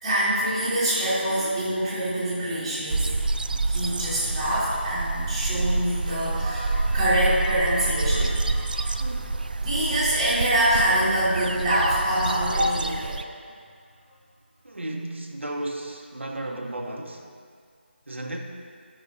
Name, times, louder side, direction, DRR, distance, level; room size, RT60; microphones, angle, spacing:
voice 1, 0.0-3.1 3.6-9.0 9.3-9.4 9.6-13.2, right 1 dB, 5° right, -15 dB, 2.2 m, -25 dB
sound 1, 2.9-13.2, right 3 dB, 50° right, 0.3 m, -28 dB
voice 2, 9.0-9.4 14.6-17.2 18.1-18.4, right 1 dB, 90° right, 0 dB, 1.1 m, -34 dB
14.5 x 6.3 x 2.7 m, 2.1 s
figure-of-eight pair, 170°, 6 cm